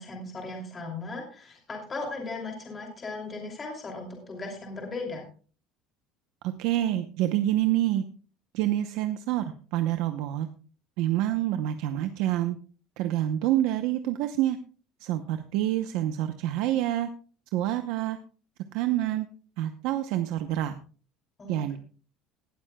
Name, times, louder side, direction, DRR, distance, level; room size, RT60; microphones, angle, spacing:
voice 1, 0.0-5.3 21.4-21.8, left 3 dB, 20° left, 1 dB, 2.7 m, -37 dB
voice 2, 6.6-8.0 8.5-9.4 9.7-10.5 11.0-12.6 13.0-14.6 15.0-17.1 17.5-18.2 18.7-19.3 19.6-20.7 21.5-21.8, right 13 dB, 60° right, 8 dB, 0.8 m, -27 dB
18.5 x 12.0 x 2.3 m, 0.39 s
cardioid pair, 175°, 0 cm